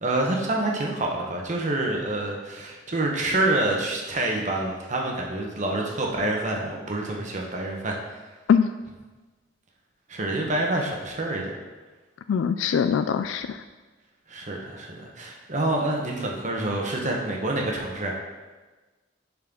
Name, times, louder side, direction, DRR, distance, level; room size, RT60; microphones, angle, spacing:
voice 1, 0.0-7.9 10.1-11.5 14.3-18.2, right 2 dB, 40° right, 0 dB, 1.2 m, -27 dB
voice 2, 12.3-13.6, left 7 dB, 80° left, 10 dB, 0.3 m, -22 dB
11.0 x 4.3 x 3.8 m, 1.3 s
head